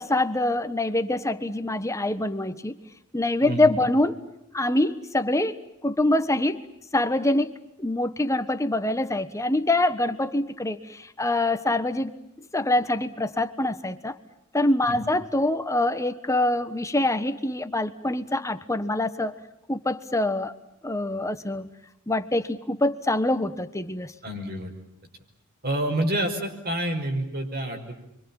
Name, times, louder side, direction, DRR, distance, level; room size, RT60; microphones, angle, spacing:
voice 1, 0.0-2.7 3.1-4.1 4.5-5.6 5.8-6.6 6.9-7.5 7.8-12.1 12.5-14.1 14.5-19.3 19.7-20.5 20.8-21.7 22.1-24.1, left 1 dB, 15° left, 10 dB, 1.3 m, -25 dB
voice 2, 24.2-24.7 25.6-27.9, right 1 dB, 45° right, 4 dB, 5.5 m, -28 dB
30.0 x 24.0 x 7.3 m, 0.85 s
head